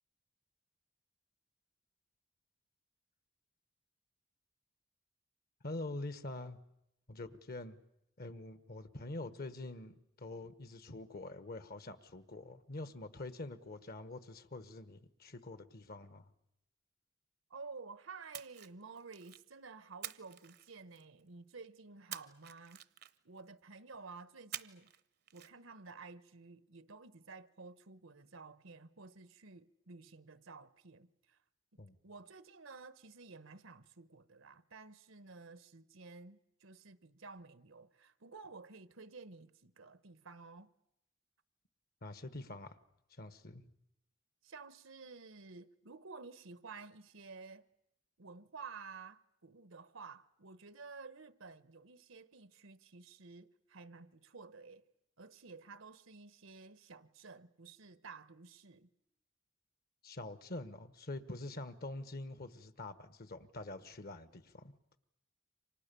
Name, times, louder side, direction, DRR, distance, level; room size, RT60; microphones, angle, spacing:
voice 1, 5.6-6.6 7.1-7.8 8.2-16.3 31.8-32.0 42.0-42.8 43.1-43.7 60.0-64.7, left 2 dB, 50° left, 1.3 m, -45 dB
voice 2, 17.5-22.8 23.2-24.9 25.3-31.4 31.7-40.7 44.4-47.7 48.2-54.8 55.2-58.9, right 4 dB, 80° right, 1.1 m, -52 dB
Splash splatter, 18.3-19.5 20.0-21.2 22.1-23.4 24.5-25.0 25.3-25.5, right 12 dB, 55° right, 0.9 m, -48 dB
28.5 x 25.5 x 6.9 m
head